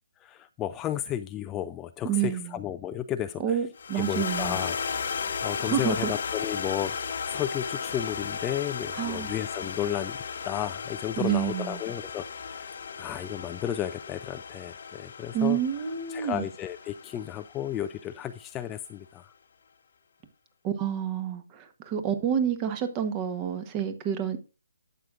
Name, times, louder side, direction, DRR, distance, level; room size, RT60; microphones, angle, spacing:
voice 1, 0.2-3.6 3.9-6.9 7.3-10.2 10.5-12.3 12.5-12.7 13.0-19.3, left 11 dB, 15° left, 0.3 m, -33 dB
voice 2, 2.0-2.6 3.4-4.6 5.6-6.1 8.9-9.3 11.2-11.8 15.3-16.5 20.6-24.4, right 9 dB, 25° right, 1.1 m, -28 dB
sound 1, 3.8-18.2, left 6 dB, 55° left, 0.8 m, -35 dB
11.5 x 7.8 x 2.5 m
figure-of-eight pair, 145°, 0 cm